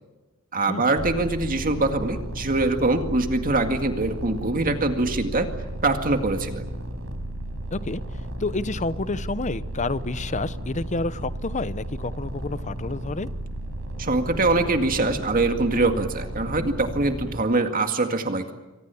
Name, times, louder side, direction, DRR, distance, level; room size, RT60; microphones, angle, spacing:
voice 1, 0.5-5.5 5.8-6.6 14.0-18.5, right 2 dB, 40° right, 6 dB, 2.1 m, -23 dB
sound 1, 1.0-17.4, right 1 dB, 70° right, 4.8 m, -34 dB
voice 2, 7.7-8.0 8.4-13.3, left 3 dB, 35° left, 15 dB, 0.9 m, -29 dB
28.5 x 24.5 x 7.1 m, 1.1 s
head